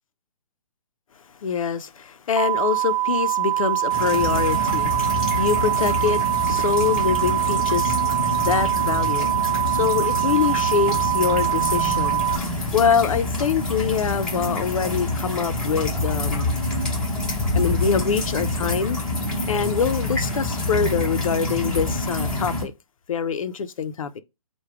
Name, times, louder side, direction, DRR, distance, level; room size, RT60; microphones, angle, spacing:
voice 1, 1.4-8.0 8.4-9.3 9.7-12.2 12.7-16.6 17.5-19.0 19.5-22.7 23.1-24.2, left 6 dB, 60° left, 0.5 m, -24 dB
sound 1, 2.4-12.4, right 14 dB, 70° right, 0.5 m, -23 dB
sound 2, 3.9-22.6, left 2 dB, 5° left, 1.0 m, -27 dB
4.7 x 2.2 x 4.6 m
hypercardioid pair, 160°, 19 cm